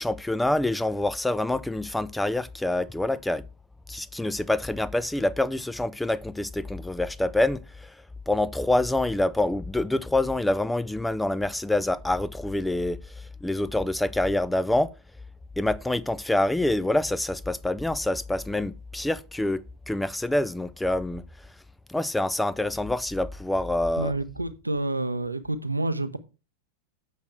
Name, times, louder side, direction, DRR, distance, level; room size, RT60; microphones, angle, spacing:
voice 1, 0.0-3.4 3.9-8.0 8.3-14.9 15.6-21.2 21.9-24.1, left 1 dB, 5° left, 0.4 m, -26 dB
voice 2, 24.0-26.2, right 2 dB, 85° right, 0.7 m, -28 dB
8.1 x 6.4 x 4.4 m
figure-of-eight pair, 90°, 0 cm